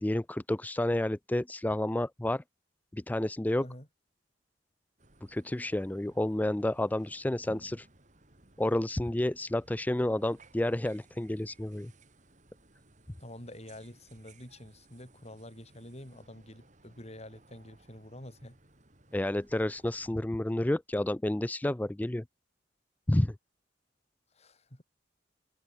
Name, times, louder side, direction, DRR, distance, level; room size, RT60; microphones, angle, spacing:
voice 1, 0.0-2.4 2.9-3.7 5.3-7.9 8.6-11.9 19.1-22.2 23.1-23.4, left 1 dB, 10° left, 0.4 m, -30 dB
sound 1, 5.0-20.1, right 2 dB, 40° right, 3.7 m, -60 dB
voice 2, 13.2-18.6 24.3-24.8, left 1 dB, 35° left, 7.8 m, -48 dB
head